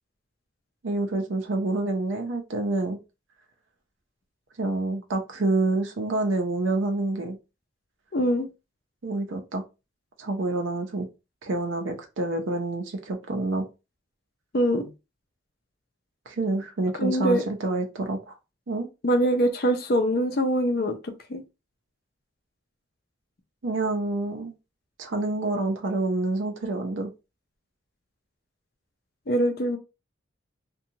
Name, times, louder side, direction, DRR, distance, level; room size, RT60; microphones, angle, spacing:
voice 1, 0.8-3.0 4.6-7.4 9.0-9.6 10.2-11.1 11.4-13.7 16.3-18.2 18.7-18.9 23.6-24.5 25.0-27.1, right 2 dB, 85° right, 0.6 m, -27 dB
voice 2, 8.1-8.5 14.5-14.9 17.0-17.4 19.0-21.4 29.3-29.8, equal, 50° left, 0.5 m, -23 dB
2.7 x 2.3 x 2.7 m
head